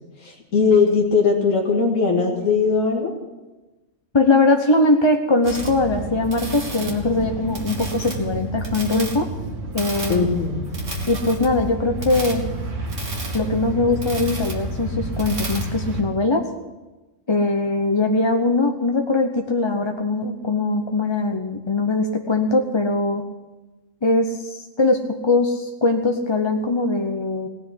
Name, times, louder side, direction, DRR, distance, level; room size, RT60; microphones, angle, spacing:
voice 1, 0.2-3.1 10.1-10.6, left 5 dB, 90° left, -1 dB, 2.3 m, -19 dB
voice 2, 4.1-9.3 9.7-10.2 11.1-12.4 13.3-16.4 17.3-23.2 24.0-27.5, left 2 dB, 25° left, 4 dB, 0.7 m, -21 dB
sound 1, 5.4-16.0, right 2 dB, 70° right, 2.2 m, -29 dB
18.0 x 6.3 x 9.8 m, 1.1 s
omnidirectional pair, 1.3 m